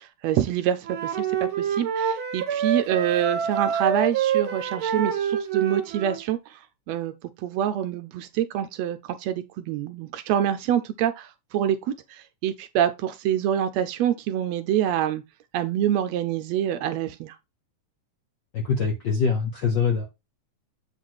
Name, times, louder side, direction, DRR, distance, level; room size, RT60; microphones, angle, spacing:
voice 1, 0.2-6.6 6.9-7.1 7.4-15.2 15.5-17.4, right 10 dB, 75° right, 1.6 m, -26 dB
Wind instrument woodwind instrument, 0.8-6.2, right 8 dB, 55° right, 1.7 m, -27 dB
voice 2, 18.5-20.1, left 5 dB, 65° left, 1.1 m, -24 dB
8.0 x 4.1 x 4.6 m
omnidirectional pair, 3.4 m